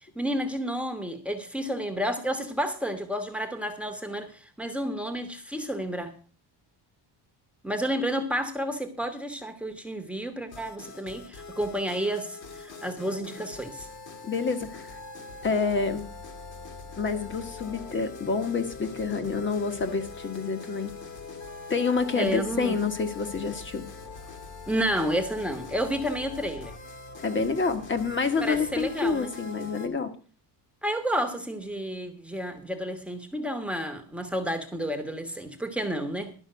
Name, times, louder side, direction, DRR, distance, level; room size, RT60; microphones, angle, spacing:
voice 1, 0.0-6.2 7.6-13.9 22.1-22.8 24.7-26.7 28.4-29.3 30.8-36.3, equal, 5° right, 7 dB, 1.3 m, -31 dB
sound 1, 10.5-29.9, left 4 dB, 45° left, 1.9 m, -42 dB
voice 2, 14.2-14.9 15.4-16.1 17.0-20.9 21.7-23.9 27.2-30.1, left 4 dB, 25° left, 9 dB, 1.4 m, -28 dB
12.0 x 5.7 x 7.8 m, 0.41 s
cardioid pair, 170°, 42 cm